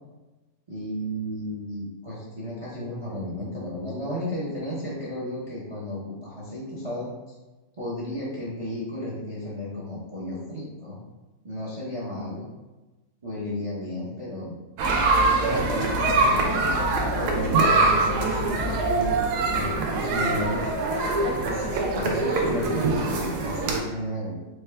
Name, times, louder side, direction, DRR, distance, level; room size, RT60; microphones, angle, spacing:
voice 1, 0.7-7.1 7.8-11.0 11.4-12.5 13.2-14.6 15.3-16.7 17.2-19.2 19.5-20.7 21.0-24.4, left 1 dB, 35° right, -6 dB, 0.5 m, -33 dB
sound 1, 14.8-23.8, right 3 dB, 75° right, 1.1 m, -23 dB
4.4 x 2.3 x 3.2 m, 1.1 s
omnidirectional pair, 1.7 m